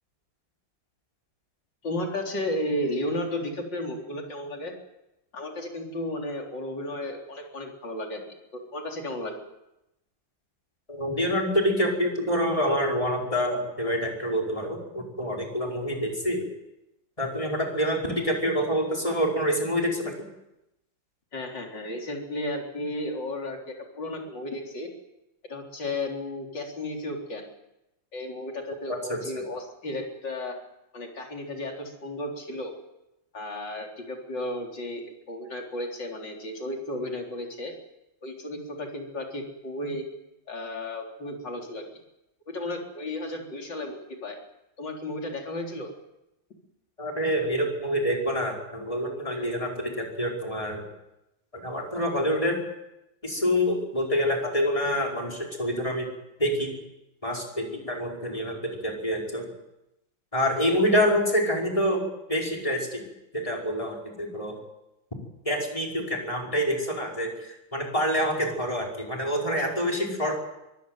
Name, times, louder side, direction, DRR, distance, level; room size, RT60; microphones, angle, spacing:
voice 1, 1.8-4.7 5.3-8.2 8.5-9.4 21.3-24.9 25.5-27.5 28.1-30.6 30.9-32.7 33.3-37.7 38.2-40.0 40.5-41.8 42.5-44.4 44.8-45.9, left 1 dB, 70° left, 1 dB, 4.5 m, -33 dB
voice 2, 10.9-16.4 17.2-20.1 28.9-29.2 47.0-50.8 51.5-52.6 53.2-56.0 56.4-56.8 57.2-59.5 60.3-63.0 63.3-64.6 65.4-70.4, equal, 15° left, 0 dB, 5.1 m, -27 dB
24.0 x 15.5 x 9.3 m, 0.90 s
omnidirectional pair, 2.0 m